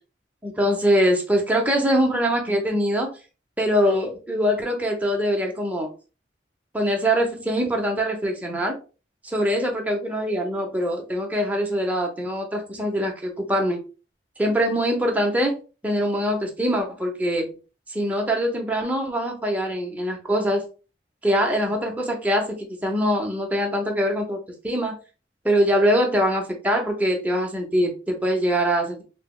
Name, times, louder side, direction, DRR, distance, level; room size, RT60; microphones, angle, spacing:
voice 1, 0.4-3.1 3.6-5.9 6.7-8.7 9.3-13.8 14.4-15.6 15.8-17.5 17.9-20.7 21.2-25.0 25.4-29.0, equal, 10° right, 0.7 m, -23 dB
4.9 x 2.1 x 2.2 m
head